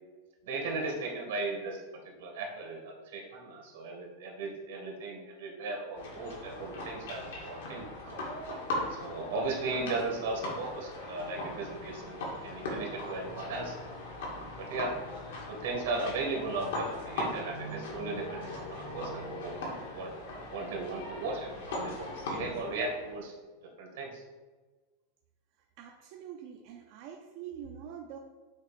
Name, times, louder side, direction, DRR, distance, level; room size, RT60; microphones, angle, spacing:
voice 1, 0.4-1.8 2.2-8.2 8.9-13.8 14.6-14.9 15.5-19.5 19.9-20.1 20.5-23.3 23.8-24.2, right 3 dB, 75° right, 0 dB, 1.8 m, -36 dB
sound 1, 5.9-23.2, left 1 dB, 85° left, 1.8 m, -39 dB
voice 2, 25.8-28.2, right 9 dB, 45° right, 2 dB, 0.5 m, -45 dB
6.5 x 3.0 x 5.0 m, 1.3 s
supercardioid pair, 165°, 0 cm